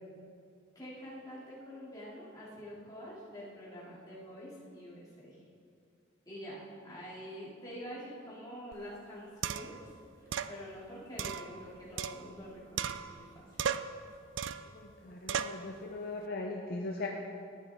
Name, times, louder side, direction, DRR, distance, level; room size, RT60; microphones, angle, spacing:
voice 1, 0.7-5.4 6.3-9.8 10.5-13.6, equal, 20° left, -8 dB, 2.7 m, -46 dB
sound 1, 8.7-8.8 9.4-9.8 10.3-10.5 11.2-12.5 12.8-13.3 13.6-14.0 14.4-14.7 15.3-15.6, right 8 dB, 65° right, 0.4 m, -36 dB
voice 2, 14.7-17.1, left 2 dB, 50° left, 1 dB, 0.6 m, -39 dB
14.0 x 9.1 x 3.6 m, 2.4 s
head